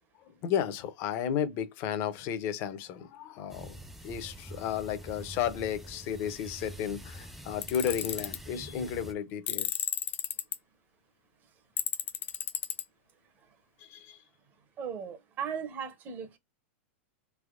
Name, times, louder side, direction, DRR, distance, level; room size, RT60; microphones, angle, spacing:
voice 1, 0.4-3.8 4.0-9.7 13.8-14.2, left 9 dB, 40° left, 0.7 m, -33 dB
sound 1, 3.5-9.1, right 1 dB, 5° right, 0.5 m, -46 dB
Tools, 7.6-8.4 9.5-10.6 11.8-12.8, left 11 dB, 75° left, 0.6 m, -32 dB
voice 2, 14.8-16.4, right 7 dB, 25° right, 0.9 m, -37 dB
3.4 x 2.8 x 2.5 m
supercardioid pair, 150°, 7 cm